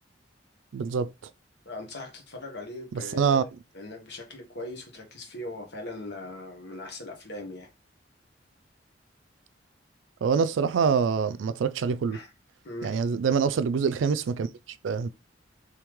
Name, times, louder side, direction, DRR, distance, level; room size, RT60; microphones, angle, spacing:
voice 1, 0.7-1.3 2.9-3.5 10.2-12.2 12.8-14.5 14.8-15.1, right 6 dB, 85° right, 0.4 m, -25 dB
voice 2, 1.6-3.5 3.7-7.7 12.1-12.3 12.6-13.0, left 1 dB, 65° left, 1.3 m, -40 dB
3.6 x 3.3 x 3.1 m
head